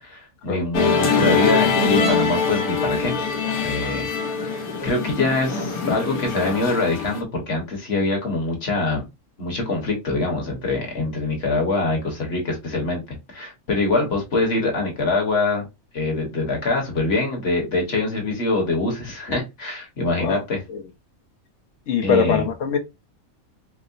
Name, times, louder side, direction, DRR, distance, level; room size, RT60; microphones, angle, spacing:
voice 1, 0.0-3.1 3.6-4.5 4.8-9.0 9.4-13.0 13.3-15.7 15.9-20.6 22.0-22.4, left 2 dB, 50° left, 1.2 m, -24 dB
Musical instrument, 0.7-7.2, left 4 dB, 85° left, 1.3 m, -23 dB
voice 2, 21.9-22.8, left 6 dB, 65° left, 1.0 m, -22 dB
4.5 x 2.0 x 2.5 m
omnidirectional pair, 1.5 m